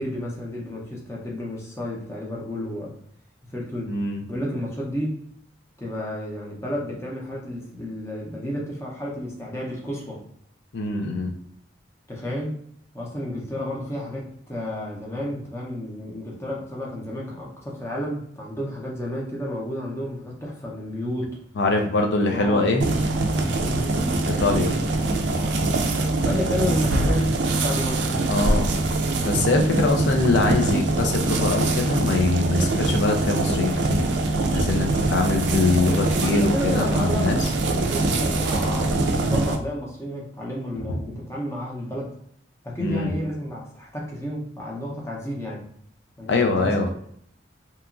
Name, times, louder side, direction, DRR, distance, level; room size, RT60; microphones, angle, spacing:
voice 1, 0.0-2.9 3.5-4.0 4.3-5.2 5.8-10.2 12.1-12.6 12.9-21.4 22.0-22.7 23.6-23.9 26.2-28.2 36.2-42.1 42.6-45.7 46.2-46.7, left 1 dB, 15° left, -3 dB, 0.6 m, -31 dB
voice 2, 3.9-4.2 10.7-11.3 21.6-22.9 24.3-24.8 28.2-28.7 29.1-34.1 34.5-37.5 42.8-43.1 46.3-46.9, left 3 dB, 65° left, 2 dB, 0.4 m, -23 dB
sound 1, 22.8-39.6, right 2 dB, 65° right, 0.3 m, -23 dB
2.9 x 2.3 x 2.4 m, 0.67 s
head